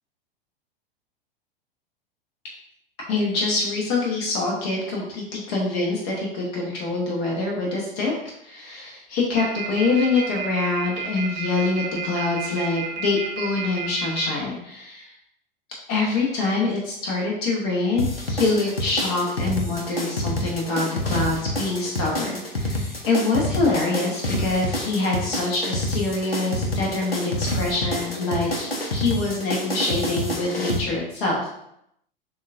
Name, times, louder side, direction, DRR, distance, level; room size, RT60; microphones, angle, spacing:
voice 1, 3.1-8.1 8.4-15.1 15.9-31.5, left 3 dB, 40° left, -2 dB, 1.0 m, -25 dB
sound 1, 9.4-14.3, right 8 dB, 25° right, 0.9 m, -31 dB
sound 2, 18.0-30.8, left 1 dB, 85° left, 0.7 m, -28 dB
6.8 x 2.4 x 2.5 m, 0.78 s
figure-of-eight pair, 95°, 29 cm